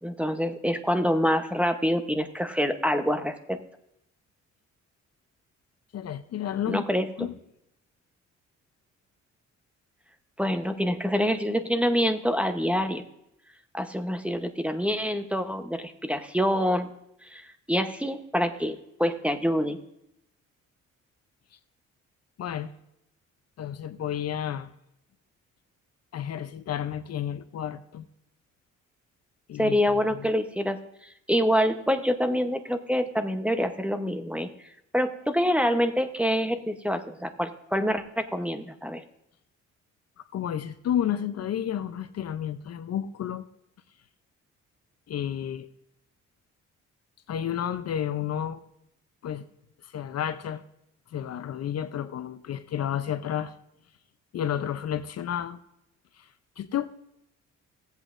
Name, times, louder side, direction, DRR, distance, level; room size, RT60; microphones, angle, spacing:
voice 1, 0.0-3.6 6.7-7.1 10.4-13.0 13.7-16.9 17.2-19.8 29.6-30.8 31.0-34.5 34.9-39.0, equal, 5° right, 8 dB, 0.9 m, -26 dB
voice 2, 5.9-6.8 7.2-7.3 22.4-22.7 23.6-24.7 26.1-28.1 29.5-29.8 30.2-30.3 40.3-43.5 45.1-45.7 47.3-48.6 49.2-49.4 49.8-50.6 51.1-53.5 54.3-55.6 56.2-56.3 56.6-56.9, left 10 dB, 55° left, 12 dB, 0.6 m, -31 dB
16.5 x 8.2 x 2.5 m, 0.80 s
cardioid pair, 90°, 30 cm